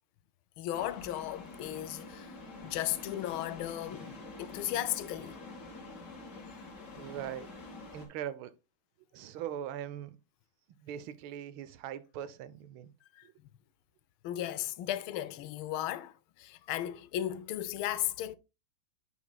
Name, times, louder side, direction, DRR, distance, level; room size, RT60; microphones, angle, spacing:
voice 1, 0.6-2.3 2.6-4.1 4.4-5.4 13.2-13.3 14.2-18.4, left 13 dB, 85° left, 1.4 m, -35 dB
sound 1, 0.7-8.1, left 2 dB, 55° left, 2.0 m, -47 dB
voice 2, 7.0-7.5 7.9-8.5 9.1-10.2 10.8-12.9 13.2-13.3, right 10 dB, 90° right, 1.5 m, -41 dB
8.2 x 5.2 x 2.2 m
omnidirectional pair, 2.2 m